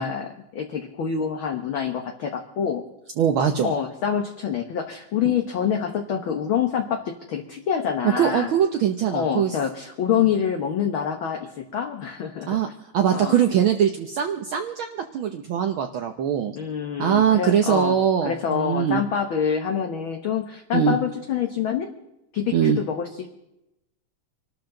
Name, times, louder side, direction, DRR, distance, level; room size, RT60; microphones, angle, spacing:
voice 1, 0.0-2.8 3.6-8.5 9.1-12.6 13.1-13.4 16.5-21.9 22.3-23.3, left 8 dB, 55° left, 4 dB, 1.5 m, -26 dB
voice 2, 3.2-3.7 8.0-9.5 12.5-12.7 12.9-16.6 17.0-19.0 20.7-21.0 22.5-22.8, right 9 dB, 75° right, 5 dB, 1.2 m, -22 dB
26.0 x 13.0 x 3.9 m, 0.87 s
omnidirectional pair, 3.4 m